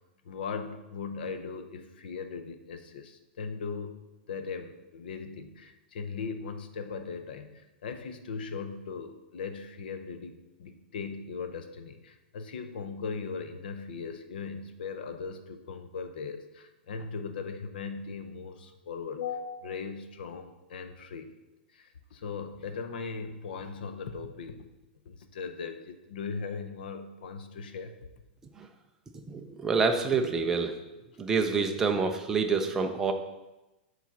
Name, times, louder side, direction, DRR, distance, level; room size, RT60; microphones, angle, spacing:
voice 1, 0.2-4.0 4.3-21.3 21.7-24.7 25.0-27.9, left 5 dB, 60° left, 8 dB, 0.7 m, -39 dB
voice 2, 29.3-30.7 31.2-33.1, right 5 dB, 5° right, 4 dB, 0.4 m, -27 dB
7.3 x 4.0 x 5.8 m, 1.0 s
hypercardioid pair, 175°, 6 cm